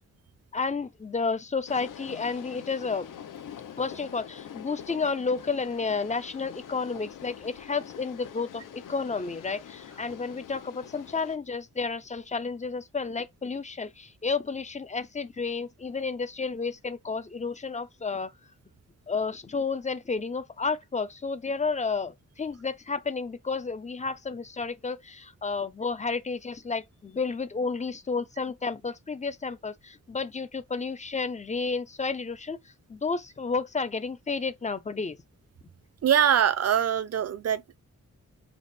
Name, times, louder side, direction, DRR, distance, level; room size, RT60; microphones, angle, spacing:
voice 1, 0.5-3.1 3.8-18.3 19.1-32.6 32.9-35.2, left 4 dB, 25° left, 0.4 m, -31 dB
sound 1, 1.7-11.4, left 9 dB, 75° left, 0.5 m, -45 dB
voice 2, 36.0-37.8, right 9 dB, 50° right, 0.4 m, -23 dB
3.4 x 2.0 x 4.0 m
wide cardioid pair, 165°, 32 cm